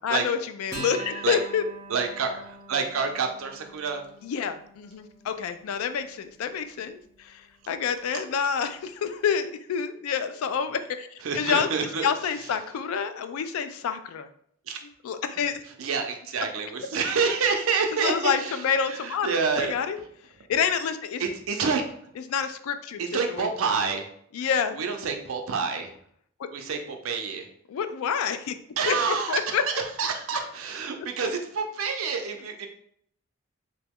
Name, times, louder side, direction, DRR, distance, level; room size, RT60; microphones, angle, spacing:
voice 1, 0.0-1.6 4.2-7.4 7.7-11.7 12.0-14.3 15.0-15.6 18.0-19.3 19.6-20.0 20.5-21.2 22.3-23.0 23.3-23.5 24.3-24.8 26.4-26.5 27.7-28.6 28.9-29.6, left 7 dB, 80° left, 10 dB, 0.3 m, -28 dB
Acoustic guitar, 0.7-7.5, right 2 dB, 15° left, 1.0 m, -44 dB
voice 2, 1.9-4.1 8.1-8.2 11.2-12.1 12.3-12.5 14.7-14.8 15.4-19.8 21.2-22.1 23.0-24.1 24.4-25.9 26.5-27.5 28.8-32.7, right 5 dB, 75° right, 4 dB, 0.5 m, -28 dB
2.9 x 2.2 x 3.5 m, 0.67 s
head